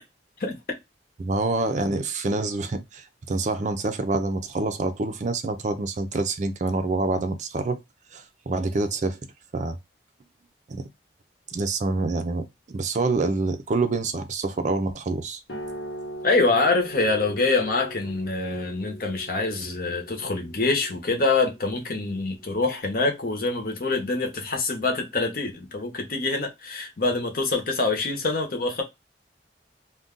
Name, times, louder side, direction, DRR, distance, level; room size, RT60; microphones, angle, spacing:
voice 1, 1.2-7.8 8.1-9.2 9.5-9.8 10.7-10.8 11.5-15.4, right 3 dB, 40° right, 0.4 m, -26 dB
sound 1, 15.5-22.6, right 1 dB, 80° left, 1.0 m, -41 dB
voice 2, 16.2-28.8, left 3 dB, 55° left, 0.9 m, -25 dB
2.5 x 2.2 x 3.6 m
head